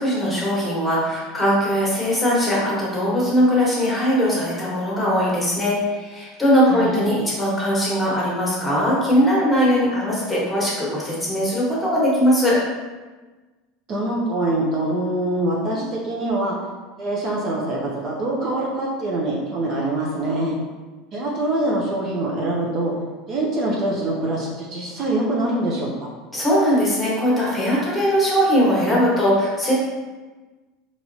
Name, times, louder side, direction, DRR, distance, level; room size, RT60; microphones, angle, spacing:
voice 1, 0.0-12.6 26.3-29.7, equal, 5° left, -6 dB, 1.4 m, -20 dB
voice 2, 13.9-16.5 17.0-20.5 21.1-22.9 23.3-26.1, right 1 dB, 40° right, -4 dB, 0.7 m, -24 dB
4.2 x 3.0 x 2.7 m, 1.3 s
supercardioid pair, 125°, 0 cm